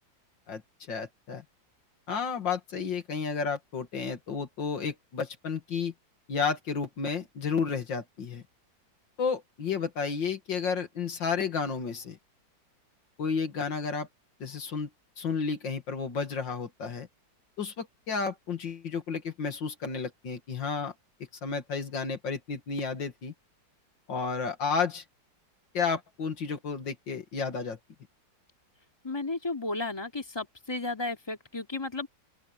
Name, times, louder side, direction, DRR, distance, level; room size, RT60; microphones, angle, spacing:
voice 1, 0.9-1.4 2.1-5.9 6.3-8.4 9.2-12.2 13.2-14.1 14.4-14.9 15.2-17.1 17.6-20.9 21.4-23.3 24.1-25.0 25.7-27.8, left 5 dB, 75° left, 2.7 m, -32 dB
voice 2, 29.0-32.1, left 2 dB, 15° left, 2.8 m, -33 dB
open air
omnidirectional pair, 2.0 m